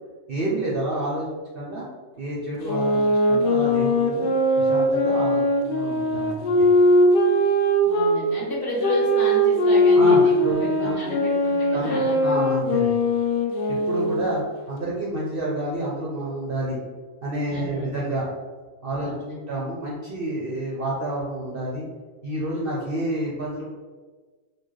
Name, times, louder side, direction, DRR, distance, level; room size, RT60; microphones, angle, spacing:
voice 1, 0.3-1.3 1.5-1.9 2.2-6.7 9.9-11.2 11.7-11.9 12.2-12.9 13.7-16.8 17.2-18.3 18.8-19.1 19.5-21.8 22.2-23.6, right 1 dB, 55° right, -5 dB, 0.6 m, -29 dB
sound 1, 2.6-8.2 8.8-14.4, equal, 90° left, 0.4 m, -20 dB
voice 2, 7.8-12.2 17.5-17.9 18.9-19.4, equal, 50° left, -5 dB, 0.9 m, -32 dB
4.1 x 2.3 x 3.1 m, 1.4 s
omnidirectional pair, 1.5 m